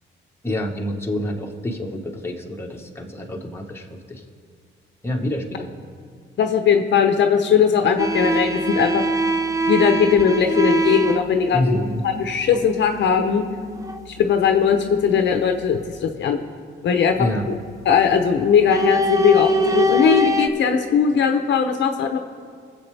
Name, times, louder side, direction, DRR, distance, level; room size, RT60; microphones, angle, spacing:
voice 1, 0.4-4.2 5.0-5.7 11.5-12.0 17.2-17.4, left 1 dB, 10° left, 0 dB, 1.5 m, -27 dB
voice 2, 6.4-9.0 9.7-11.8 12.0-13.4 14.2-16.4 16.8-17.3 17.8-22.2, left 7 dB, 65° left, 5 dB, 0.9 m, -19 dB
sound 1, 8.0-14.1 14.4-15.9 17.8-18.1 18.4-20.5, equal, 15° right, 0.8 m, -23 dB
23.0 x 7.8 x 3.4 m, 2.1 s
cardioid pair, 90°, 20 cm